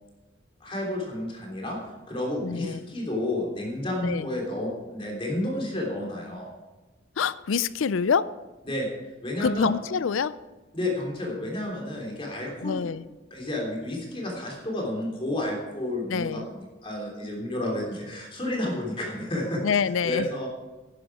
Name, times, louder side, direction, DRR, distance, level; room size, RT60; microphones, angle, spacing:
voice 1, 0.6-1.8 2.1-6.5 8.6-8.9 9.2-9.7 10.7-12.8 13.3-19.6 20.0-20.5, left 1 dB, 25° left, -2 dB, 3.3 m, -31 dB
voice 2, 2.4-2.8 4.0-4.3 7.2-8.3 9.4-10.4 12.6-13.0 16.1-16.5 19.6-20.3, left 6 dB, 85° left, 17 dB, 0.4 m, -26 dB
11.0 x 10.5 x 4.9 m, 1.2 s
head